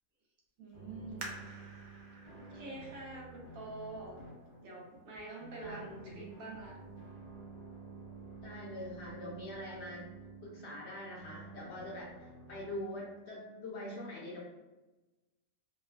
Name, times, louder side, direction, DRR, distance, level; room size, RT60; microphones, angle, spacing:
voice 1, 0.6-1.4 2.3-4.2 4.6-6.8, right 2 dB, 90° right, -2 dB, 1.2 m, -46 dB
sound 1, 0.7-12.8, right 3 dB, 45° left, 0.4 m, -51 dB
sound 2, 1.2-4.6 5.2-5.3 5.9-6.3 6.7-6.8, right 2 dB, 70° right, 0.4 m, -50 dB
voice 2, 5.6-6.4 8.4-10.1 10.4-14.4, left 1 dB, 60° left, -4 dB, 0.8 m, -44 dB
3.0 x 2.3 x 2.3 m, 1.1 s
omnidirectional pair, 1.4 m